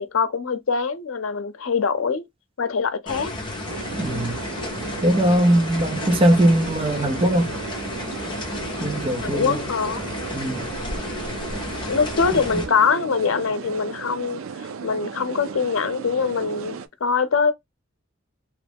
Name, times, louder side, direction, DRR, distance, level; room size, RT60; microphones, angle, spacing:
voice 1, 0.0-2.2 2.6-3.3 9.2-10.0 11.9-17.5, left 5 dB, 85° left, 0.6 m, -23 dB
sound 1, 3.1-12.7, left 2 dB, 25° left, 0.8 m, -32 dB
sound 2, 3.7-16.9, right 6 dB, 85° right, 0.4 m, -35 dB
voice 2, 4.0-4.4 5.0-7.5 8.8-9.6 10.3-10.7 12.5-12.6, right 1 dB, 30° right, 0.6 m, -20 dB
3.0 x 2.3 x 3.4 m
head